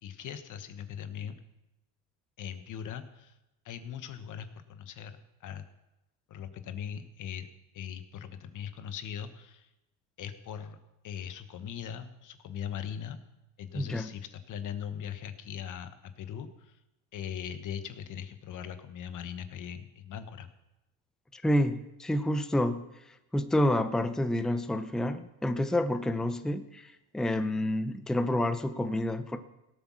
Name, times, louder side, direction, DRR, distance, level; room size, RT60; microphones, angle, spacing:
voice 1, 0.0-1.3 2.4-3.4 3.6-5.7 6.3-7.5 7.7-9.7 10.2-10.8 11.0-13.2 13.6-16.8 17.1-20.5, left 8 dB, 45° left, 10 dB, 1.3 m, -40 dB
voice 2, 13.7-14.1 21.3-22.9 23.3-29.4, left 1 dB, ahead, 9 dB, 0.6 m, -29 dB
17.5 x 8.3 x 6.2 m, 0.93 s
cardioid pair, 120°, 42 cm